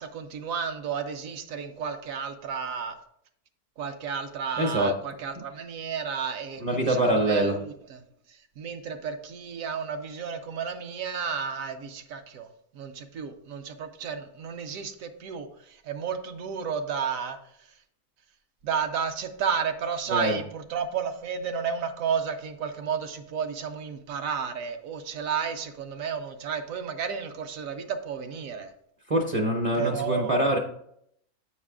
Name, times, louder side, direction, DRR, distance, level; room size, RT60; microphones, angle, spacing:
voice 1, 0.0-3.0 3.8-8.0 8.3-12.5 12.7-17.4 18.6-28.7 29.8-30.6, right 6 dB, 70° right, 8 dB, 1.0 m, -32 dB
voice 2, 4.6-4.9 6.6-7.6 20.1-20.4 29.1-30.6, right 1 dB, 35° right, 2 dB, 0.6 m, -24 dB
8.1 x 4.8 x 3.6 m, 0.71 s
omnidirectional pair, 1.6 m